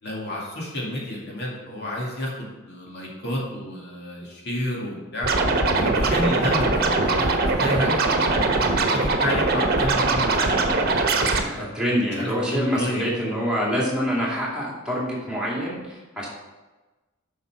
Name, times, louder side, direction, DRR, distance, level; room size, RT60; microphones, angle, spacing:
voice 1, 0.0-5.3 5.8-8.1 8.6-11.6 12.2-13.0, left 1 dB, 55° left, -3 dB, 2.3 m, -30 dB
Scratching (performance technique), 5.2-11.4, right 3 dB, 50° right, 1.1 m, -21 dB
voice 2, 11.4-16.3, equal, 5° right, -6 dB, 2.5 m, -26 dB
8.2 x 5.6 x 5.9 m, 1.2 s
head